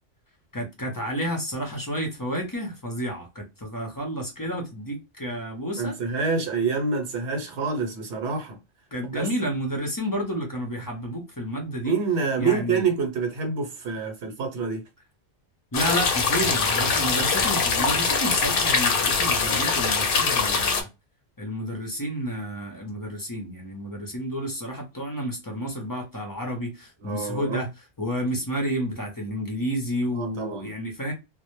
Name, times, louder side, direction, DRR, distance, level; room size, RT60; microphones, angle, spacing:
voice 1, 0.5-6.0 8.9-11.9 12.4-12.8 15.7-20.9 21.4-27.7 28.0-31.1, equal, 30° left, 0.4 m, -30 dB
voice 2, 5.8-8.6 9.1-9.3 11.8-14.8 27.0-27.7 28.3-28.4 30.1-30.7, right 4 dB, 80° right, 0.9 m, -27 dB
sound 1, 15.7-20.8, left 5 dB, 60° left, 0.7 m, -23 dB
2.1 x 2.0 x 2.9 m
omnidirectional pair, 1.2 m